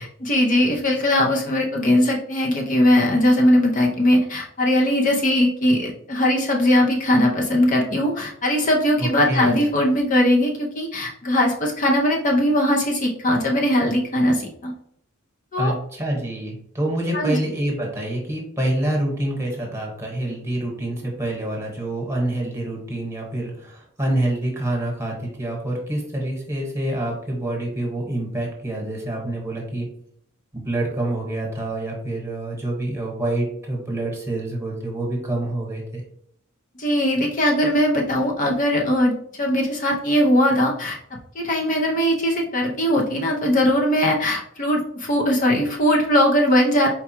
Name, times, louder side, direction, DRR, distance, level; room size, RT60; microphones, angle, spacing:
voice 1, 0.0-14.7 15.5-15.7 17.1-17.4 36.8-41.0 41.4-46.9, left 1 dB, 40° left, -1 dB, 0.6 m, -20 dB
voice 2, 9.0-9.5 15.6-29.9 30.5-36.0, right 1 dB, 15° right, -1 dB, 1.2 m, -27 dB
4.5 x 2.3 x 4.3 m, 0.67 s
head